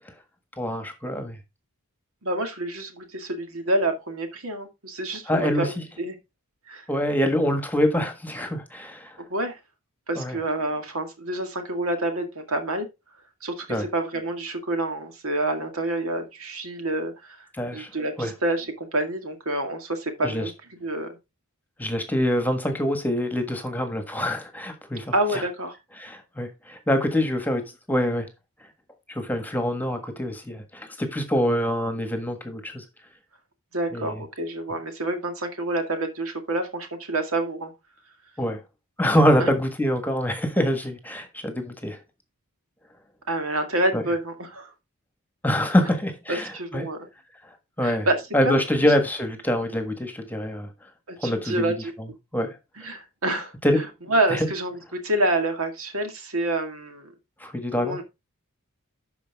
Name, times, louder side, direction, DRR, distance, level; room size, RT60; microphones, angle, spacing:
voice 1, 0.6-1.4 5.3-5.7 6.9-9.2 10.1-10.4 13.7-13.9 17.6-17.9 18.2-18.3 20.2-20.5 21.8-25.1 26.0-27.6 27.9-28.3 29.1-32.8 33.9-34.2 38.4-38.6 39.0-42.0 43.9-44.0 45.4-46.9 47.8-48.1 48.3-50.7 51.2-51.7 52.3-52.6 52.8-52.9 53.6-53.8 54.3-54.5 57.4-58.0, equal, 10° left, 1.5 m, -25 dB
voice 2, 2.2-6.2 6.7-6.9 9.3-9.6 10.1-12.9 13.4-17.5 17.7-20.5 20.8-21.2 25.1-25.8 33.7-37.7 39.4-39.5 43.3-44.7 46.3-47.1 47.8-48.9 51.1-51.9 52.8-57.1 57.8-58.0, right 1 dB, 65° right, 2.1 m, -28 dB
12.0 x 4.8 x 3.5 m
head